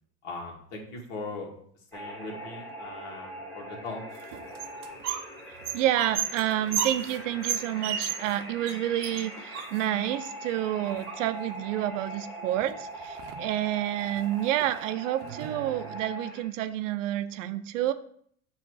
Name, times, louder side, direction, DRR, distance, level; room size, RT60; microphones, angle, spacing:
voice 1, 0.2-1.5 1.9-4.0, left 3 dB, 60° left, 0 dB, 2.0 m, -39 dB
sound 1, 1.9-16.4, right 1 dB, 5° left, 1.7 m, -42 dB
sound 2, 4.1-5.3 5.6-8.4 8.7-8.8 9.0-10.2 10.8-11.5 12.6-12.7 13.0-13.5 14.0-14.2 14.6-14.7 15.2-16.0, right 8 dB, 45° right, 0.7 m, -34 dB
voice 2, 5.7-17.9, right 12 dB, 85° right, 12 dB, 0.6 m, -29 dB
7.2 x 3.2 x 4.7 m, 0.64 s
supercardioid pair, 130°, 36 cm